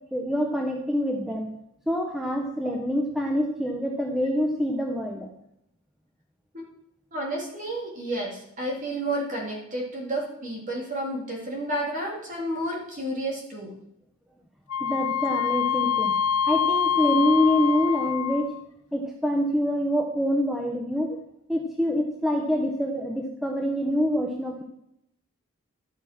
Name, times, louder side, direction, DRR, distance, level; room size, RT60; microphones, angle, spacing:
voice 1, 0.1-1.5 1.9-5.3 14.8-16.2 16.5-18.5 18.9-21.1 21.5-24.6, equal, ahead, 1 dB, 0.9 m, -26 dB
voice 2, 7.1-13.7 15.9-16.0, right 1 dB, 40° right, -1 dB, 3.3 m, -31 dB
Wind instrument woodwind instrument, 14.7-18.6, left 8 dB, 90° left, 0.4 m, -25 dB
12.0 x 6.4 x 6.1 m, 0.79 s
head